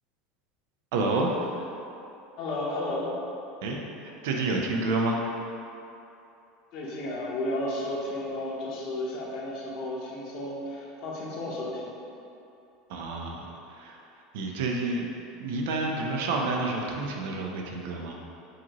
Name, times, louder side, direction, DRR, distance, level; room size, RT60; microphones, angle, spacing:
voice 1, 0.9-1.6 3.6-5.4 12.9-14.0 14.3-15.1 15.4-18.2, right 2 dB, 75° right, 0 dB, 0.5 m, -29 dB
voice 2, 2.4-3.1 6.7-11.9, left 1 dB, 55° left, -4 dB, 0.9 m, -33 dB
4.8 x 2.9 x 2.9 m, 2.8 s
supercardioid pair, 150°, 0 cm